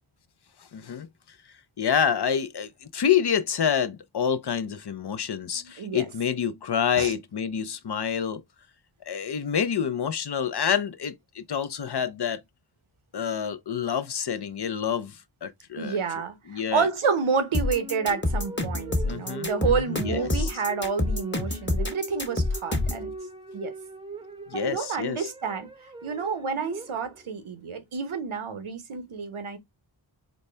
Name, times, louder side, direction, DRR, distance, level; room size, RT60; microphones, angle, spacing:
voice 1, 0.7-1.1 1.8-8.4 9.1-12.4 13.1-16.0 16.5-16.9 19.1-20.5 24.5-25.3, left 8 dB, 55° left, 0.6 m, -28 dB
voice 2, 5.5-6.1 7.0-7.1 15.8-23.1 23.5-23.7 24.5-25.7 26.0-29.6, right 5 dB, 85° right, 0.9 m, -29 dB
sound 1, 17.1-27.5, right 2 dB, 10° right, 0.7 m, -42 dB
sound 2, 17.5-23.1, left 2 dB, 25° left, 1.2 m, -27 dB
4.1 x 2.1 x 3.2 m
wide cardioid pair, 45°, 48 cm